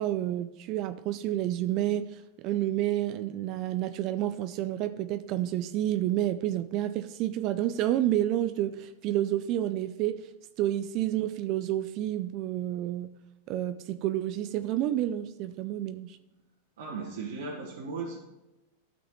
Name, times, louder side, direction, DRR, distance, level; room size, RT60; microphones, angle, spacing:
voice 1, 0.0-10.3 10.6-13.1 13.5-16.2, right 13 dB, 45° right, 11 dB, 0.5 m, -29 dB
voice 2, 16.8-18.2, right 4 dB, 75° right, -5 dB, 1.8 m, -36 dB
13.5 x 6.1 x 3.1 m, 1.0 s
hypercardioid pair, 100°, 0 cm